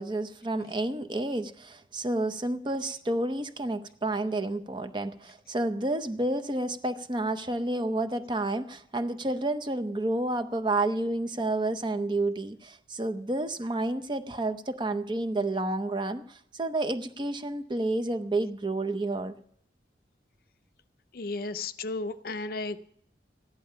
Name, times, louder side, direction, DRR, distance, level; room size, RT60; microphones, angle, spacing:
voice 1, 0.0-19.4, right 2 dB, 25° right, 9 dB, 0.6 m, -30 dB
voice 2, 21.1-22.8, left 3 dB, 55° left, 11 dB, 0.5 m, -34 dB
14.0 x 10.5 x 5.6 m, 0.66 s
head